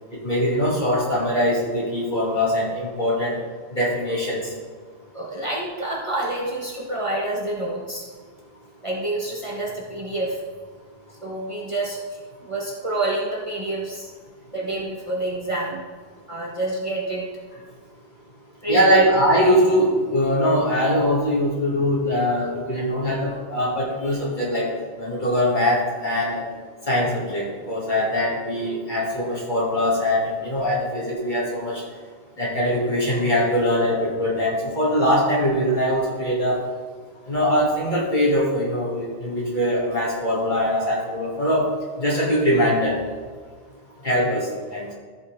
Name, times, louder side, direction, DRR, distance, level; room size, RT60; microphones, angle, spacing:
voice 1, 0.2-3.3 3.7-4.5 18.7-24.7 25.0-26.4 26.9-31.8 32.4-36.6 37.3-41.7 42.0-43.0 44.0-44.9, equal, 40° left, -6 dB, 2.8 m, -22 dB
voice 2, 5.1-8.1 8.8-10.4 11.2-12.0 12.4-14.1 14.5-15.8 16.3-17.3 18.6-19.1, right 2 dB, 25° right, -4 dB, 1.5 m, -27 dB
14.5 x 5.8 x 3.7 m, 1.5 s
omnidirectional pair, 1.2 m